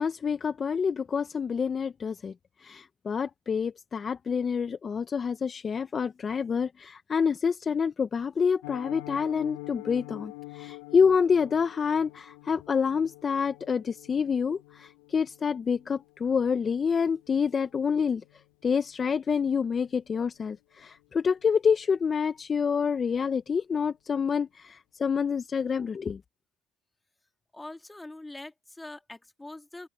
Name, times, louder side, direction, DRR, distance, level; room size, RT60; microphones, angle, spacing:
voice 1, 0.0-2.3 2.6-18.2 18.6-26.2, left 6 dB, 35° left, 1.2 m, -27 dB
Piano, 8.6-19.5 19.8-20.0 20.3-20.5 20.8-21.1 21.4-21.5, left 26 dB, 85° left, 5.0 m, -47 dB
voice 2, 27.5-29.9, left 2 dB, 10° left, 2.9 m, -43 dB
open air
supercardioid pair, 75°, 0 cm